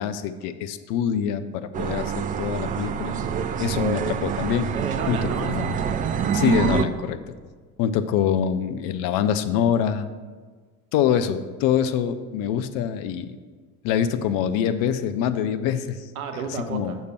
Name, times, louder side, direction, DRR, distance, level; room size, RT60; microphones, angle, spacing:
voice 1, 0.0-3.1 3.6-4.7 5.1-5.8 6.3-7.2 7.8-10.1 10.9-13.4 13.8-16.0 16.7-17.0, left 9 dB, 50° left, 11 dB, 0.6 m, -25 dB
sound 1, 1.7-6.8, right 7 dB, 20° right, 0.3 m, -26 dB
voice 2, 4.7-5.8 16.2-17.1, right 6 dB, 75° right, 6 dB, 0.7 m, -32 dB
6.6 x 4.5 x 6.5 m, 1.5 s
figure-of-eight pair, 50°, 43 cm